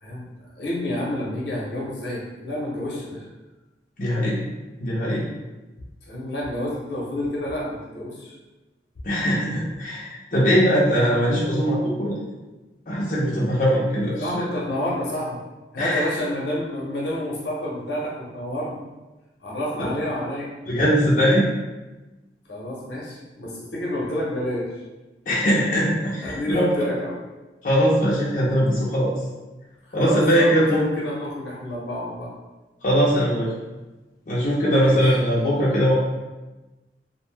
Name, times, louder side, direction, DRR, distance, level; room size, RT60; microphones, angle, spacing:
voice 1, 0.0-3.3 6.1-8.3 14.2-15.4 15.7-18.8 19.4-20.5 22.5-24.7 26.2-27.2 30.0-32.3 34.8-35.0, left 1 dB, 80° left, -4 dB, 0.7 m, -29 dB
voice 2, 4.0-5.3 9.0-12.2 12.9-14.3 15.8-16.1 20.7-21.5 25.3-26.7 27.6-29.1 29.9-30.8 32.8-33.5 34.3-35.9, equal, 45° left, -7 dB, 0.5 m, -21 dB
2.5 x 2.1 x 3.2 m, 1.1 s
head